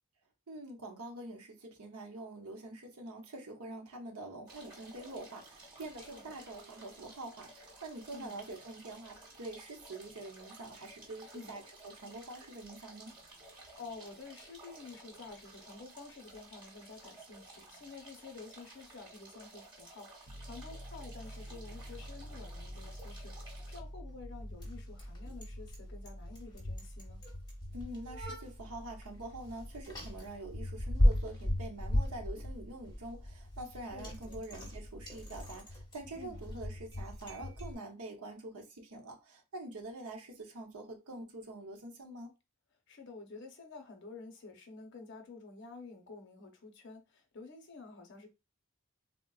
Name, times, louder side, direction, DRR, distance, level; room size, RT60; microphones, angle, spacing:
voice 1, 0.5-13.2 27.7-42.3, right 2 dB, 85° right, 0.8 m, -46 dB
sound 1, 4.5-23.8, right 2 dB, 20° right, 1.0 m, -54 dB
voice 2, 8.1-8.4 11.3-11.5 13.7-27.2 33.9-34.4 36.1-36.4 42.9-48.3, left 4 dB, 55° left, 0.7 m, -50 dB
Piano, 20.3-36.9, equal, 45° right, 0.5 m, -50 dB
Bicycle, 21.5-37.7, left 1 dB, 20° left, 0.7 m, -37 dB
3.7 x 2.1 x 2.3 m
head